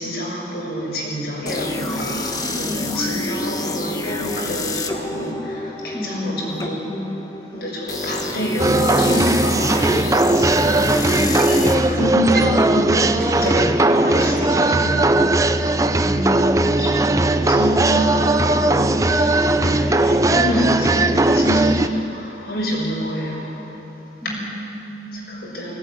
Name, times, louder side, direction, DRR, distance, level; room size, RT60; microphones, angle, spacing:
voice 1, 0.0-6.8 7.5-10.1 10.7-15.3 16.6-23.7 24.2-24.4 25.1-25.8, equal, 65° left, -3 dB, 6.8 m, -27 dB
sound 1, 1.5-15.2, left 2 dB, 20° left, 1.3 m, -29 dB
voice 2, 2.6-3.2 3.8-4.0 5.9-7.1 10.6-11.6 15.8-16.7 24.2-25.2, left 1 dB, ahead, -6 dB, 3.8 m, -31 dB
sound 2, 8.6-21.9, right 2 dB, 20° right, 0.6 m, -18 dB
sound 3, 9.8-9.9 11.2-15.2, right 1 dB, 50° right, 3.6 m, -30 dB
19.5 x 17.5 x 9.8 m, 2.9 s
head